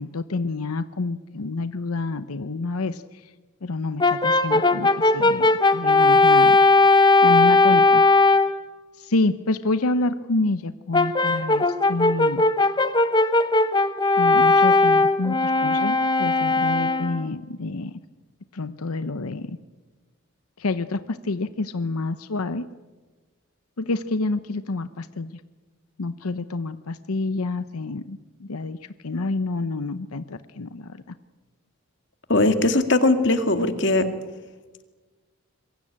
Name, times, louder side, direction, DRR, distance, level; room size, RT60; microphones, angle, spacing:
voice 1, 0.0-3.3 3.6-6.9 7.2-8.0 8.9-12.4 14.2-18.0 18.5-19.6 20.6-22.7 23.8-25.4 26.0-31.1, left 3 dB, 85° left, 12 dB, 0.8 m, -28 dB
Brass instrument, 4.0-8.6 10.9-17.3, left 3 dB, 20° left, 1.0 m, -18 dB
voice 2, 32.3-34.0, left 2 dB, 55° left, 8 dB, 2.2 m, -19 dB
26.5 x 23.0 x 8.7 m, 1.3 s
head